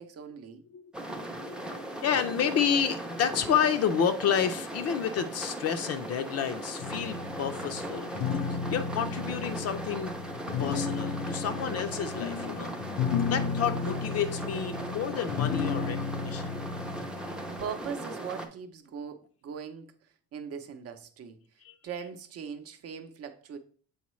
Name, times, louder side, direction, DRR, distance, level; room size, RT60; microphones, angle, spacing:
voice 1, 0.0-0.6 17.6-19.9 20.3-21.4 21.8-23.6, right 7 dB, 45° right, 0.6 m, -40 dB
voice 2, 0.7-8.1 8.7-10.1 10.6-12.7 13.3-16.5 21.6-21.7, left 7 dB, 50° left, 0.5 m, -30 dB
sound 1, 0.9-18.5, right 1 dB, 5° right, 0.5 m, -38 dB
sound 2, 6.8-17.7, left 5 dB, 90° left, 0.7 m, -34 dB
7.1 x 4.5 x 3.1 m
cardioid pair, 160°, 32 cm